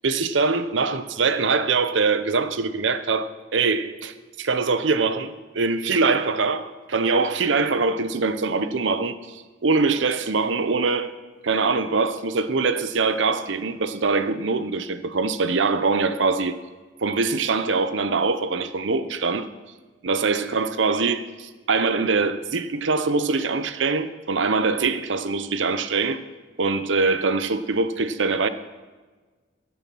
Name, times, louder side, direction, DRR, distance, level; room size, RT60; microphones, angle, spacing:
voice 1, 0.0-11.1 11.4-16.6 17.0-19.4 20.0-26.2 26.6-28.5, right 4 dB, 70° right, 0.7 m, -23 dB
14.5 x 7.0 x 6.1 m
head